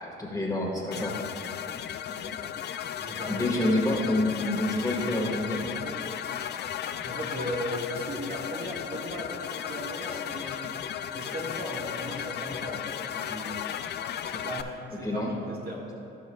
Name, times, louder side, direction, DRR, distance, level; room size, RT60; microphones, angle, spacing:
voice 1, 0.0-1.2 3.2-5.6 15.0-15.3, left 1 dB, 15° left, -2 dB, 1.7 m, -27 dB
sound 1, 0.9-14.6, left 9 dB, 60° left, 0.4 m, -35 dB
voice 2, 2.1-3.5 5.8-6.0 7.0-10.8 11.1-13.6 14.3-15.9, equal, 50° right, -3 dB, 1.8 m, -37 dB
17.0 x 6.3 x 2.3 m, 2.6 s
cardioid pair, 90°, 20 cm